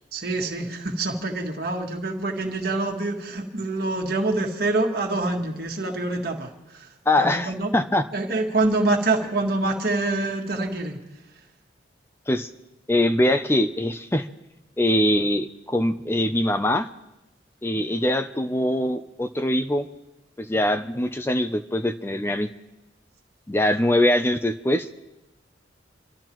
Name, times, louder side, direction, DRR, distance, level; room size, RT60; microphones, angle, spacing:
voice 1, 0.1-11.0, right 2 dB, 50° right, 1 dB, 1.7 m, -26 dB
voice 2, 7.1-8.0 12.3-12.5 12.9-14.3 14.8-16.9 17.6-19.9 20.4-22.5 23.5-25.0, left 1 dB, 10° left, 9 dB, 0.5 m, -23 dB
29.0 x 12.5 x 3.0 m, 0.97 s
head